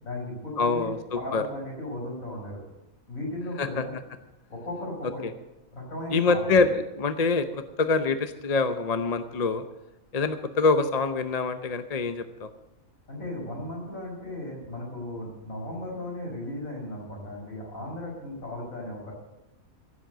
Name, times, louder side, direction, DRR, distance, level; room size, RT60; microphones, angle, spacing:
voice 1, 0.0-2.6 3.1-3.9 4.5-5.2 5.7-6.6 13.1-19.1, left 1 dB, 80° left, -3 dB, 6.1 m, -36 dB
voice 2, 0.6-1.4 3.6-3.8 5.2-5.3 6.1-9.6 10.1-12.5, left 4 dB, 40° left, 9 dB, 0.7 m, -25 dB
15.5 x 7.7 x 7.8 m, 0.95 s
omnidirectional pair, 1.4 m